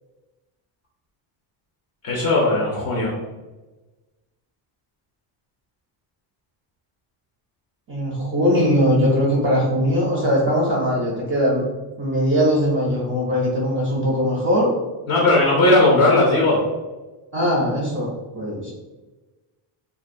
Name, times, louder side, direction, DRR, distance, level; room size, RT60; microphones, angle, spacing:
voice 1, 2.0-3.1 15.1-16.6, left 2 dB, 35° left, -2 dB, 0.4 m, -17 dB
voice 2, 7.9-11.6 12.0-14.7 17.3-18.7, equal, 30° right, -5 dB, 0.4 m, -20 dB
2.5 x 2.2 x 2.5 m, 1.2 s
cardioid pair, 155°, 48 cm